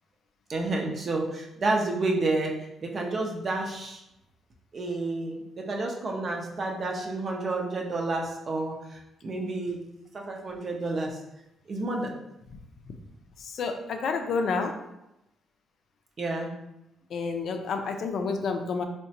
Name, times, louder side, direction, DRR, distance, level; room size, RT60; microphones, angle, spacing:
voice 1, 0.5-2.5 2.8-4.0 4.7-9.8 10.1-11.2 11.7-12.1 16.2-16.5, right 2 dB, 45° right, 0 dB, 0.6 m, -30 dB
voice 2, 13.4-14.8 17.1-18.8, left 4 dB, 65° left, 5 dB, 0.4 m, -29 dB
3.7 x 2.1 x 2.8 m, 0.87 s
cardioid pair, 90°, 0 cm